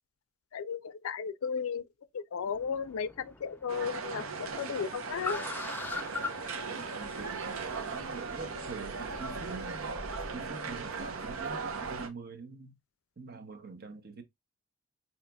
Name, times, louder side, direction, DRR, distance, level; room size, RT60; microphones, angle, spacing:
voice 1, 0.5-1.9 2.1-5.4, left 6 dB, 80° left, 0.4 m, -35 dB
Car, 2.4-9.8, left 3 dB, 10° left, 0.4 m, -43 dB
sound 1, 3.7-12.1, right 4 dB, 80° right, 0.7 m, -38 dB
voice 2, 6.7-9.9 10.3-12.8 13.2-14.2, right 4 dB, 45° right, 0.7 m, -45 dB
sound 2, 7.0-12.0, equal, 25° right, 1.1 m, -49 dB
5.5 x 2.9 x 2.2 m
head